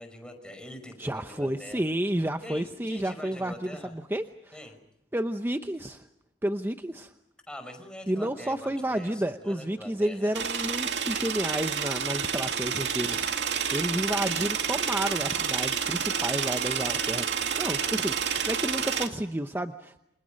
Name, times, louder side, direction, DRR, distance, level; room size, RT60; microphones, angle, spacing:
voice 1, 0.0-1.8 2.4-4.0 4.5-4.8 7.5-10.3 17.6-17.8, left 1 dB, 5° left, 5 dB, 5.6 m, -44 dB
voice 2, 1.0-4.6 5.1-6.0 6.4-7.1 8.1-17.3 17.6-20.0, right 1 dB, 15° right, 7 dB, 0.8 m, -31 dB
sound 1, 10.3-19.1, right 7 dB, 85° right, 2.2 m, -29 dB
29.0 x 27.0 x 5.3 m, 0.81 s
head